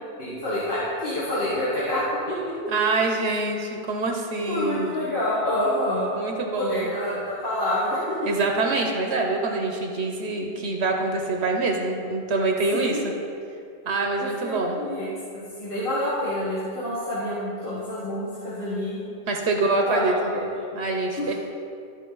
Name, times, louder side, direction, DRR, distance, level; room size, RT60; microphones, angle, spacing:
voice 1, 0.2-2.0 2.3-2.4 4.5-6.1 6.5-8.2 12.7-13.0 14.2-15.1 15.3-19.1 19.8-20.4 21.2-21.3, left 1 dB, 50° left, -9 dB, 1.6 m, -27 dB
voice 2, 2.7-5.0 6.2-6.9 8.3-13.0 13.9-14.8 19.3-20.1 20.8-21.3, right 3 dB, 70° right, 2 dB, 1.0 m, -25 dB
13.0 x 4.4 x 3.9 m, 2.4 s
omnidirectional pair, 1.2 m